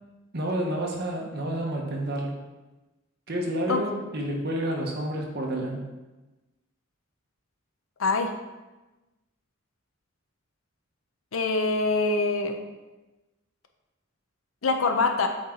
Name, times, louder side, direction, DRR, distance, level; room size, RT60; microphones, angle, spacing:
voice 1, 0.3-2.3 3.3-5.8, right 1 dB, 50° right, 1 dB, 1.2 m, -29 dB
voice 2, 8.0-8.3 11.3-12.6 14.6-15.3, left 3 dB, 80° left, 5 dB, 0.7 m, -24 dB
8.0 x 4.6 x 3.9 m, 1.1 s
head